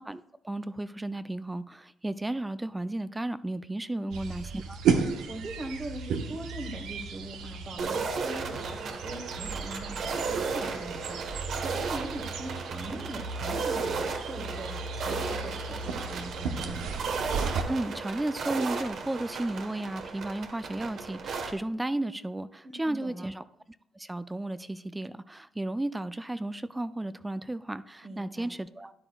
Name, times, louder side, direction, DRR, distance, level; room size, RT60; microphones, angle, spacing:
voice 1, 0.0-4.8 17.7-23.4 23.9-28.9, right 1 dB, 10° right, 14 dB, 0.3 m, -34 dB
voice 2, 3.9-4.3 5.3-16.9 22.6-23.3 28.0-28.5, right 2 dB, 40° right, 2 dB, 1.2 m, -41 dB
sound 1, 4.1-17.6, right 5 dB, 85° right, 0.8 m, -34 dB
sound 2, 7.8-21.5, right 4 dB, 65° right, 1.2 m, -35 dB
12.5 x 9.9 x 2.3 m, 0.79 s
cardioid pair, 90°, 0 cm